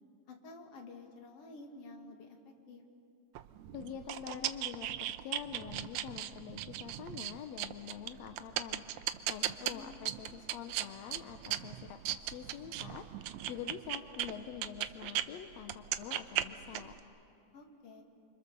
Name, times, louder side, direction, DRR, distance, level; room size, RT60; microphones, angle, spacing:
voice 1, 0.3-2.8 9.6-10.0 17.5-18.0, left 3 dB, 55° left, 2 dB, 3.0 m, -51 dB
sound 1, 3.4-15.3 15.6-17.0, right 12 dB, 75° right, 2.0 m, -38 dB
voice 2, 3.7-8.8 9.3-17.0, left 9 dB, 70° left, 6 dB, 2.0 m, -46 dB
28.5 x 25.5 x 6.9 m, 2.7 s
omnidirectional pair, 3.5 m